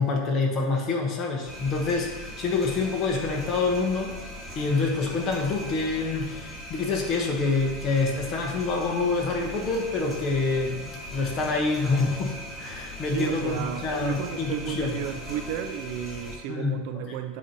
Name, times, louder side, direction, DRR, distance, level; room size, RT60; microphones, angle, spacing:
voice 1, 0.0-4.1 4.5-15.0 16.5-17.2, left 3 dB, 30° left, 1.1 m, -27 dB
sound 1, 1.4-16.4, left 1 dB, 5° left, 1.7 m, -39 dB
voice 2, 13.1-17.4, right 10 dB, 55° right, 0.4 m, -33 dB
8.4 x 2.9 x 5.2 m
supercardioid pair, 160°, 0 cm